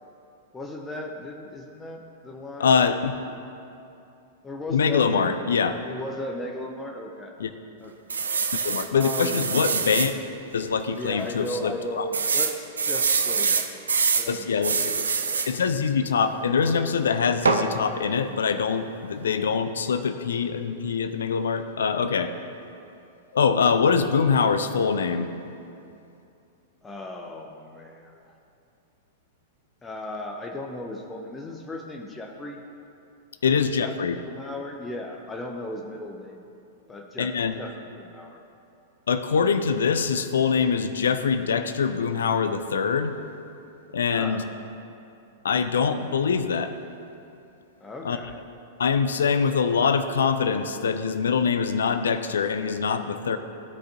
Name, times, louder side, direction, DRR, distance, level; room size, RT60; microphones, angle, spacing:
voice 1, 0.5-2.7 4.4-5.5 5.8-7.3 7.8-7.9 8.9-9.4 10.9-15.5 26.8-28.3 29.8-32.6 33.5-36.4 36.9-38.4 44.1-44.5 47.8-48.4, left 1 dB, 15° left, 1 dB, 0.7 m, -36 dB
voice 2, 2.6-3.2 4.7-5.8 7.4-7.5 8.6-10.2 10.5-12.1 14.3-14.9 15.5-22.3 23.3-25.3 33.4-34.2 37.2-37.5 39.1-43.1 43.9-44.4 45.4-46.7 48.0-48.2 48.8-53.4, left 6 dB, 65° left, 10 dB, 0.4 m, -24 dB
sound 1, 8.1-10.1 10.6-10.8 11.0-11.1 12.1-14.3 14.6-15.5 17.4-17.7, right 5 dB, 70° right, 0.5 m, -24 dB
15.0 x 5.1 x 2.8 m, 2.7 s
figure-of-eight pair, 100°, 0 cm